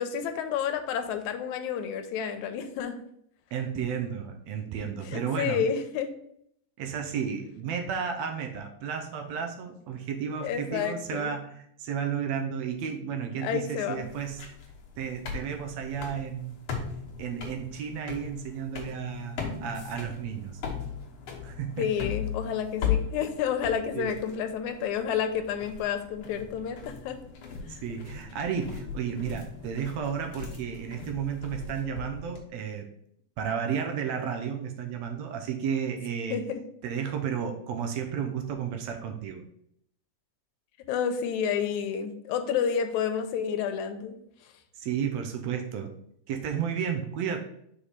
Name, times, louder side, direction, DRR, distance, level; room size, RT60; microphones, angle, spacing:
voice 1, 0.0-3.0 5.1-6.1 10.4-11.3 13.4-14.1 21.8-27.2 36.3-36.6 40.9-44.2, left 7 dB, 85° left, 8 dB, 2.0 m, -30 dB
voice 2, 3.5-5.6 6.8-14.5 15.0-16.6 17.2-20.6 21.4-22.1 23.9-24.2 27.7-32.9 33.4-36.4 36.8-39.5 44.8-45.9 46.3-47.4, right 7 dB, 75° right, 4 dB, 1.8 m, -33 dB
sound 1, 14.0-32.4, left 7 dB, 55° left, 1.7 m, -38 dB
5.1 x 5.0 x 4.3 m, 0.71 s
omnidirectional pair, 3.4 m